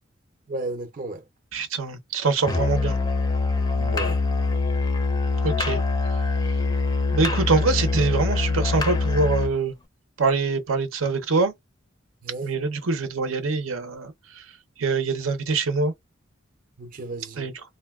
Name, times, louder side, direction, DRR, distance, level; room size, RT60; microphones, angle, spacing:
voice 1, 0.5-1.2 3.8-4.2 12.2-12.5 16.8-17.5, right 2 dB, 40° right, 0.5 m, -33 dB
voice 2, 1.5-3.0 5.4-5.8 7.1-9.7 10.2-11.5 12.4-14.1 14.8-15.9 17.4-17.5, right 4 dB, 85° right, 0.6 m, -24 dB
Musical instrument, 2.4-9.6, left 3 dB, 20° left, 0.4 m, -24 dB
3.7 x 2.2 x 2.2 m
head